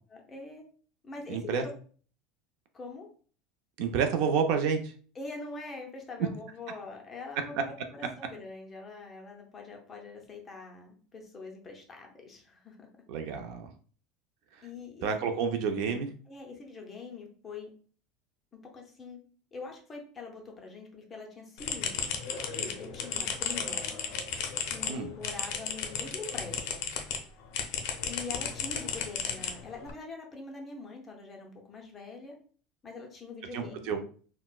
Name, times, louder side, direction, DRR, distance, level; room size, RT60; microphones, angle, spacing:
voice 1, 0.1-0.6 1.0-1.7 2.7-3.1 5.1-12.9 14.6-15.3 16.3-17.7 18.7-19.2 19.5-23.9 24.6-26.9 28.1-32.4 32.8-33.9, left 3 dB, 20° left, 1 dB, 0.6 m, -44 dB
voice 2, 1.3-1.6 3.8-4.8 7.5-7.6 13.1-13.7 15.0-16.1 24.9-25.1 33.5-34.0, right 6 dB, 55° right, 6 dB, 0.4 m, -29 dB
sound 1, 21.6-27.2 27.5-29.9, left 7 dB, 60° left, 0.5 m, -34 dB
4.1 x 2.1 x 2.3 m, 0.43 s
supercardioid pair, 160°, 0 cm